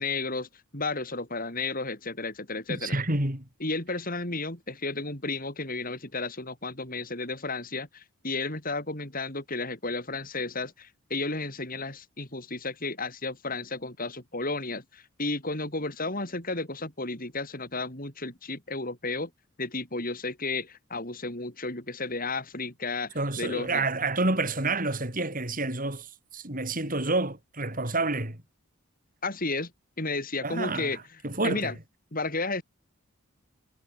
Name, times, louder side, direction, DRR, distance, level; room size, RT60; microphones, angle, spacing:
voice 1, 0.0-3.0 3.6-19.3 19.6-23.8 29.2-29.7 30.0-31.0 31.4-31.8 32.1-32.6, left 3 dB, 40° left, 7.5 m, -33 dB
voice 2, 2.7-3.5 23.1-28.4 30.4-31.0 31.2-31.7, right 2 dB, 40° right, 6.1 m, -29 dB
head